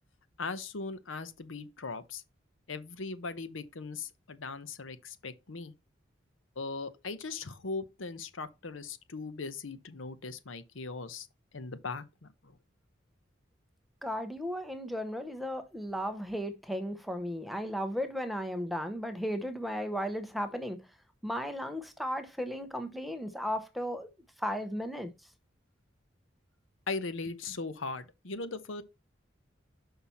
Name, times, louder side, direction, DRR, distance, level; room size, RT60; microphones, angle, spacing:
voice 1, 0.4-2.2 2.7-5.7 6.6-11.3 11.5-12.3 26.9-28.8, left 3 dB, 85° left, 0.8 m, -39 dB
voice 2, 14.0-20.8 21.2-24.1 24.4-25.1, equal, ahead, 0.7 m, -35 dB
5.7 x 5.7 x 4.3 m
head